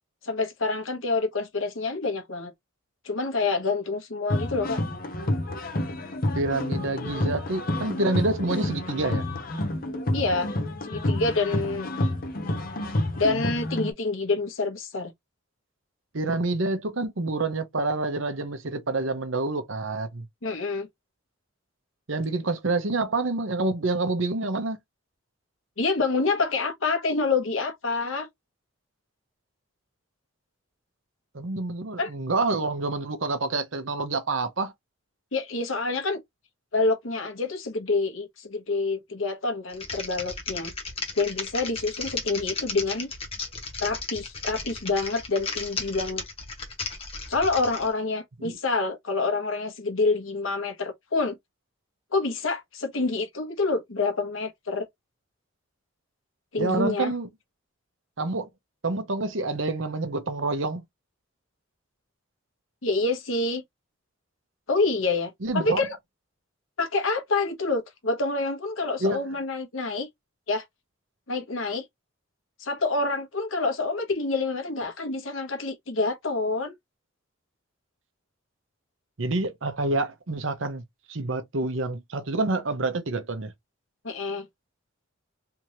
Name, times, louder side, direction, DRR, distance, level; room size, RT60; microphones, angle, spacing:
voice 1, 0.2-2.5 3.0-4.8 10.1-10.5 10.8-11.9 13.2-15.1 20.4-20.9 25.8-28.3 32.0-32.1 35.3-36.2 36.7-40.7 41.2-43.1 43.8-46.2 47.3-51.4 52.1-54.9 56.5-57.1 62.8-63.6 64.7-66.0 66.8-70.1 70.5-70.6 71.3-71.8 72.6-76.7 84.0-84.5, left 3 dB, 75° left, 1.2 m, -27 dB
sound 1, 4.3-13.9, left 1 dB, 45° left, 0.8 m, -29 dB
voice 2, 6.3-9.2 16.1-20.2 22.1-24.8 31.3-34.7 48.4-48.5 56.6-57.3 58.2-58.5 58.8-60.8 65.4-65.9 69.0-69.2 79.2-80.8 81.1-83.5, right 2 dB, 70° right, 0.9 m, -27 dB
Typing, 39.7-47.9, left 4 dB, 30° left, 1.1 m, -35 dB
3.5 x 2.9 x 3.1 m
head